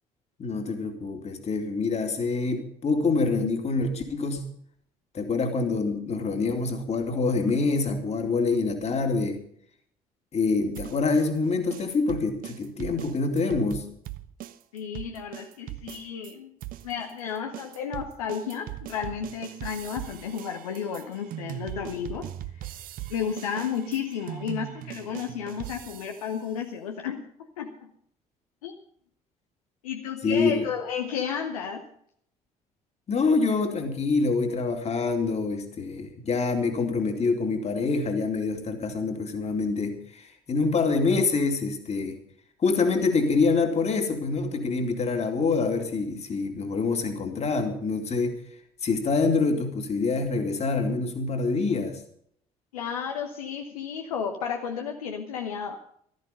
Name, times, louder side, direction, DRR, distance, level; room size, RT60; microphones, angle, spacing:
voice 1, 0.4-4.5 5.1-9.4 10.3-13.9 30.2-30.7 33.1-42.2 42.6-48.4 48.8-52.0, left 4 dB, 35° left, 5 dB, 2.6 m, -26 dB
sound 1, 10.8-16.3 16.6-26.4, right 14 dB, 50° right, 0.8 m, -40 dB
voice 2, 14.7-16.5 16.8-22.3 22.6-22.7 23.1-27.3 27.6-27.9 28.6-28.8 29.8-31.9 52.7-55.8, left 7 dB, 70° left, 4 dB, 1.0 m, -32 dB
15.0 x 13.5 x 5.3 m, 0.65 s
figure-of-eight pair, 50°, 19 cm